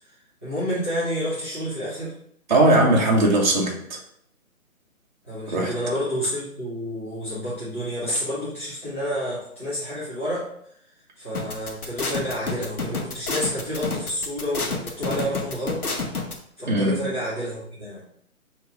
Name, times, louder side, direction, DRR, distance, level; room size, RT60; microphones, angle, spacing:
voice 1, 0.4-2.1 5.3-10.5 11.2-15.8 16.6-18.0, equal, 10° left, -15 dB, 0.5 m, -29 dB
voice 2, 2.5-4.0 5.5-5.7 16.7-17.0, right 2 dB, 35° right, -1 dB, 0.6 m, -19 dB
sound 1, 11.3-16.3, left 4 dB, 80° left, 0.9 m, -28 dB
4.6 x 2.8 x 3.1 m, 0.70 s
figure-of-eight pair, 150°, 43 cm